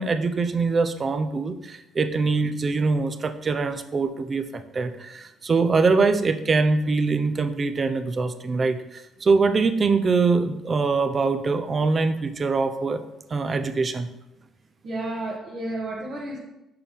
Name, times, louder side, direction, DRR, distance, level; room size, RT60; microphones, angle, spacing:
voice 1, 0.0-13.0 13.3-14.1, right 4 dB, 30° right, 10 dB, 0.5 m, -23 dB
voice 2, 14.8-16.4, right 1 dB, 50° right, -3 dB, 1.6 m, -31 dB
6.7 x 5.8 x 3.5 m, 0.91 s
cardioid pair, 120°, 0 cm